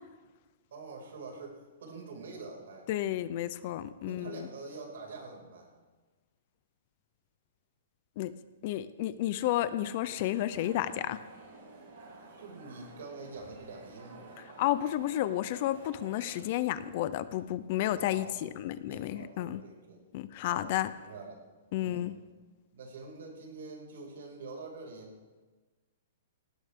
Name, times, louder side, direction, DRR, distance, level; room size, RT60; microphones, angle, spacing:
voice 1, 0.7-2.9 4.0-5.7 12.4-14.4 18.0-20.0 20.5-21.4 21.8-22.1 22.7-25.1, right 3 dB, 65° right, 1 dB, 5.5 m, -46 dB
voice 2, 2.9-4.5 8.2-8.3 8.6-11.2 14.6-19.6 20.1-20.9 21.7-22.1, left 13 dB, 30° left, 15 dB, 0.5 m, -31 dB
sound 1, 9.8-16.4, right 2 dB, 40° right, 5.8 m, -51 dB
18.5 x 17.5 x 3.6 m, 1.3 s
hypercardioid pair, 180°, 0 cm